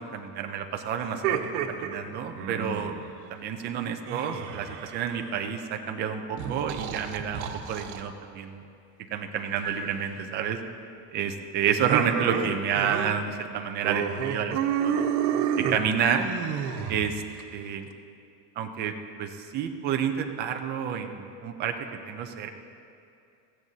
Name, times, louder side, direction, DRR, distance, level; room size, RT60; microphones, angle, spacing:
voice 1, 0.0-1.4 1.7-3.0 3.3-8.6 9.1-10.6 11.1-14.6 14.8-15.0 15.6-16.3 16.9-17.2 17.5-17.9 18.6-21.7 22.1-22.5, right 7 dB, 25° right, 5 dB, 0.3 m, -29 dB
sound 1, 1.0-3.0 4.1-5.5 6.4-8.0 9.6-10.1 11.9-13.1 13.4-13.5 13.8-17.4, right 8 dB, 70° right, 1.3 m, -30 dB
21.0 x 16.0 x 2.7 m, 2.5 s
cardioid pair, 170°, 49 cm